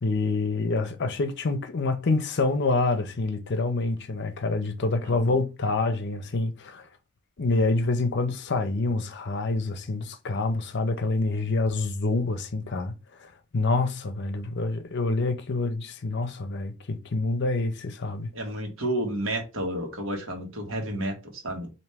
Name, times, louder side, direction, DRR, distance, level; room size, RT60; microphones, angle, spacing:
voice 1, 0.0-6.9 7.4-12.9 13.2-18.3, left 3 dB, 55° left, 0.6 m, -27 dB
voice 2, 18.3-21.7, right 1 dB, 75° right, 1.3 m, -31 dB
4.2 x 2.7 x 3.5 m
head